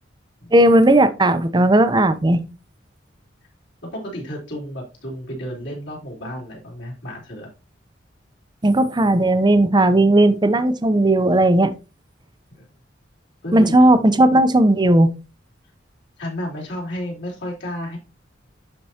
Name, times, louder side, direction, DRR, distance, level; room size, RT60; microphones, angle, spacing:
voice 1, 0.5-2.4 8.6-11.7 13.5-15.1, right 1 dB, 25° right, 0.6 m, -15 dB
voice 2, 3.8-7.5 12.5-12.6 13.4-13.9 16.2-18.0, equal, 65° left, 3.6 m, -32 dB
11.5 x 4.6 x 2.8 m
head